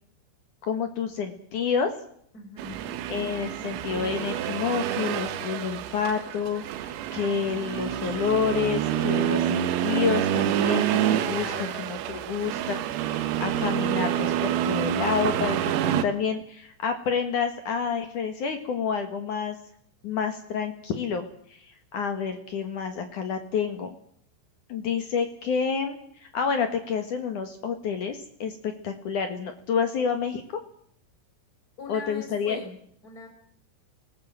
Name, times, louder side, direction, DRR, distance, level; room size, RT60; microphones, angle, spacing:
voice 1, 0.6-1.9 3.1-19.6 20.0-23.9 24.7-30.6 31.9-32.6, left 6 dB, 60° left, 7 dB, 2.1 m, -29 dB
voice 2, 2.3-2.9 11.3-11.8 31.8-32.8 33.0-33.3, left 4 dB, 20° left, 5 dB, 4.9 m, -40 dB
Accelerating revving vroom, 2.6-16.1, right 11 dB, 85° right, 4.1 m, -27 dB
23.5 x 19.5 x 7.6 m, 0.66 s
omnidirectional pair, 6.0 m